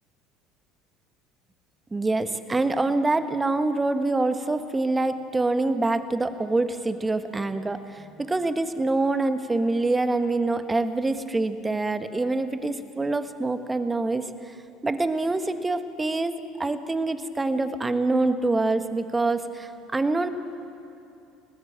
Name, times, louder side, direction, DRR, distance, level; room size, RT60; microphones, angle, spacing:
voice 1, 1.9-14.6 14.8-16.3 16.6-20.3, right 2 dB, 15° right, 9 dB, 1.6 m, -25 dB
29.5 x 19.5 x 7.6 m, 2.7 s
figure-of-eight pair, 60°, 0 cm